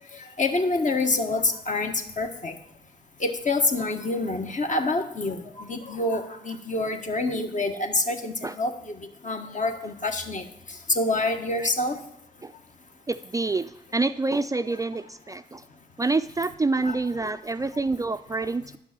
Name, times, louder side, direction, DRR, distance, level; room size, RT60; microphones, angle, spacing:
voice 1, 0.1-2.6 3.2-12.0 16.8-16.9, left 2 dB, 45° left, 5 dB, 1.4 m, -27 dB
voice 2, 13.1-15.6 16.0-18.8, right 3 dB, 20° right, 12 dB, 0.4 m, -27 dB
10.0 x 6.0 x 6.0 m, 0.74 s
supercardioid pair, 45°, 17 cm